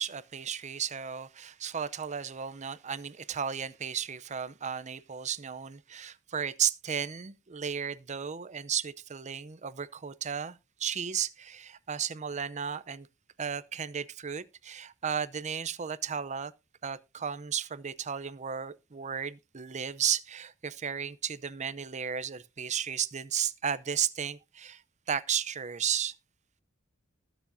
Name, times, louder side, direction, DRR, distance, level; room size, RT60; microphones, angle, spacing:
voice 1, 0.0-13.1 13.4-16.5 16.8-24.8 25.1-26.1, right 8 dB, 35° right, 0.6 m, -34 dB
20.0 x 7.1 x 2.6 m
head